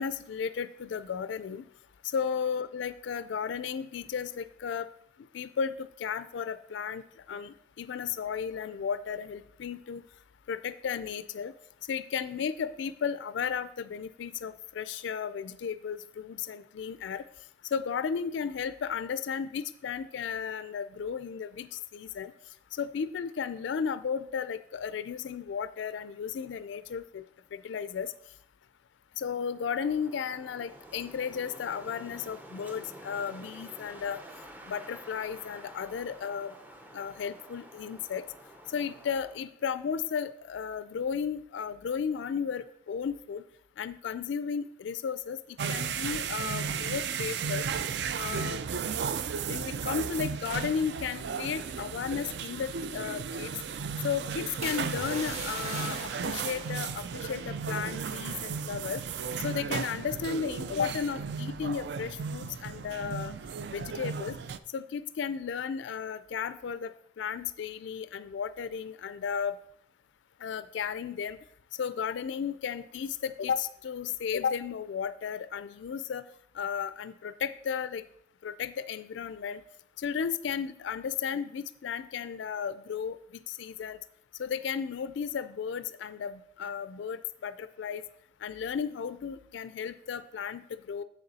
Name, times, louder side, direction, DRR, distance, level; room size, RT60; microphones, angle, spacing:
voice 1, 0.0-1.7 2.0-4.9 5.3-7.0 7.3-10.0 10.5-11.5 11.9-17.3 17.7-22.3 22.7-27.2 27.5-28.1 29.2-34.2 34.6-36.5 36.9-38.2 38.7-43.4 43.8-47.6 48.2-48.6 49.5-53.5 54.0-59.0 59.4-63.3 63.7-64.4 64.7-69.6 70.4-71.4 71.8-76.2 76.5-78.0 78.4-79.6 80.0-84.0 84.4-88.0 88.4-91.0, left 7 dB, 75° left, 13 dB, 0.3 m, -34 dB
Wind, 29.6-39.4, equal, 10° right, 0.5 m, -49 dB
sound 1, 45.6-64.6, right 6 dB, 60° right, 0.3 m, -35 dB
sound 2, 54.6-58.4 58.6-59.0 59.5-59.8, right 2 dB, 35° right, 1.4 m, -41 dB
7.2 x 6.7 x 4.1 m, 0.71 s
head